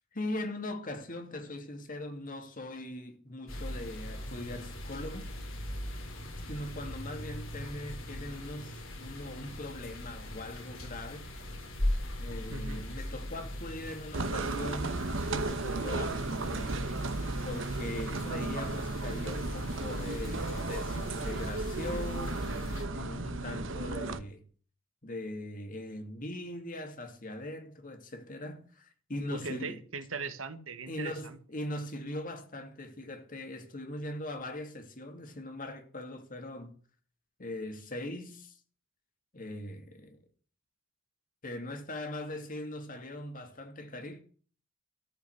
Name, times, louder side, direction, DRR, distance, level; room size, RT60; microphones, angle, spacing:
voice 1, 0.1-5.3 6.4-11.3 12.2-15.0 15.3-16.8 17.4-22.4 22.9-24.4 25.0-29.8 30.9-36.8 37.4-38.6 39.3-40.2 41.4-44.2, left 1 dB, 45° left, 2.5 m, -40 dB
sound 1, 3.5-22.9, left 1 dB, 80° left, 4.5 m, -40 dB
voice 2, 12.5-12.9 29.3-31.4, right 4 dB, 85° right, 1.7 m, -39 dB
sound 2, 14.1-24.2, right 2 dB, 70° right, 1.2 m, -35 dB
14.0 x 5.7 x 9.6 m
head